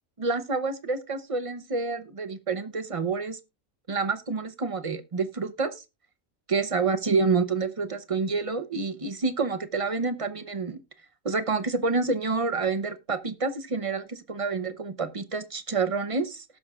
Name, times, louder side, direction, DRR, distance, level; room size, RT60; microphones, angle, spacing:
voice 1, 0.2-3.4 3.9-5.8 6.5-10.8 11.2-16.4, right 4 dB, 30° right, 0.7 m, -28 dB
18.5 x 6.2 x 2.4 m
omnidirectional pair, 1.3 m